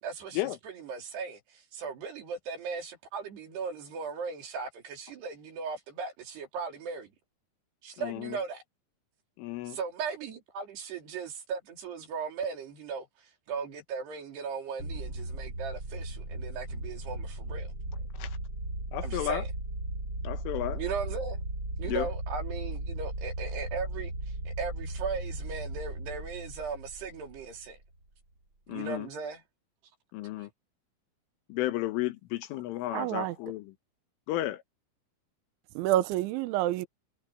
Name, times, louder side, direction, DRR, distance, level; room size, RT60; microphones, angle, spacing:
voice 1, 0.0-7.1 7.8-8.6 9.7-13.1 13.5-17.7 19.0-19.5 20.7-21.4 21.8-24.1 24.4-27.8 28.7-29.4 30.4-30.5, right 5 dB, 55° right, 5.2 m, -37 dB
voice 2, 8.0-8.4 9.4-9.8 18.2-18.3 18.9-19.4 20.2-20.8 21.9-22.1 28.7-29.1 30.1-30.5 31.5-33.7 34.3-34.6, left 15 dB, 80° left, 3.7 m, -33 dB
sound 1, 14.8-27.7, right 1 dB, 20° right, 7.8 m, -37 dB
voice 3, 32.9-33.3 35.8-36.9, right 14 dB, 75° right, 3.1 m, -28 dB
omnidirectional pair, 5.8 m